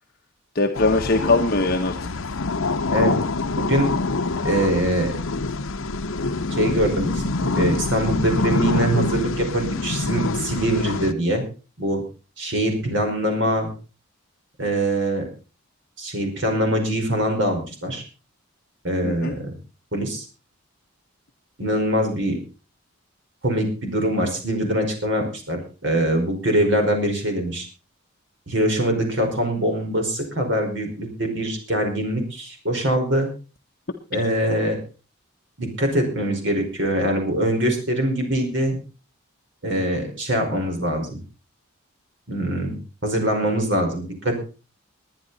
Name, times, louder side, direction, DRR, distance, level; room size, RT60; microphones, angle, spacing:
voice 1, 0.5-2.2 4.4-4.5 19.0-19.3, left 2 dB, 45° left, 3 dB, 1.2 m, -21 dB
sound 1, 0.8-11.1, left 3 dB, 70° left, 0.8 m, -25 dB
voice 2, 3.6-3.9 4.4-5.1 6.5-11.4 11.8-12.0 12.4-13.7 14.6-15.3 16.0-18.0 18.8-19.5 19.9-20.2 21.6-22.4 23.4-27.6 28.5-33.3 34.1-34.8 35.6-38.8 39.6-41.2 42.3-44.3, right 1 dB, 55° right, 3 dB, 5.0 m, -23 dB
21.0 x 10.0 x 4.1 m, 0.34 s
head